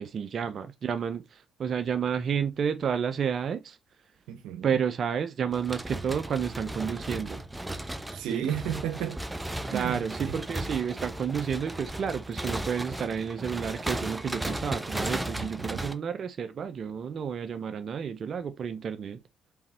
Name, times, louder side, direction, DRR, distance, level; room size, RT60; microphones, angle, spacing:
voice 1, 0.0-3.8 4.6-7.4 8.3-8.5 9.7-19.2, right 7 dB, 55° right, 0.8 m, -31 dB
voice 2, 4.3-4.7 8.1-9.2 9.7-10.0 10.3-10.4 15.4-15.9, right 10 dB, 80° right, 1.1 m, -33 dB
sound 1, 5.5-15.9, right 1 dB, 10° right, 0.9 m, -35 dB
5.6 x 4.4 x 4.3 m
supercardioid pair, 60°, 0 cm